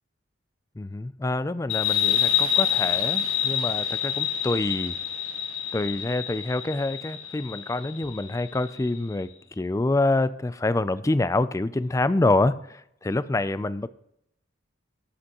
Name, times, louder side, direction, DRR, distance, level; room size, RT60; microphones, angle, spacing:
voice 1, 0.8-4.9 5.7-9.3 9.6-13.9, left 2 dB, 15° left, 15 dB, 0.3 m, -26 dB
sound 1, 1.7-8.9, left 9 dB, 85° left, 1.6 m, -27 dB
20.0 x 7.7 x 3.0 m, 0.78 s
head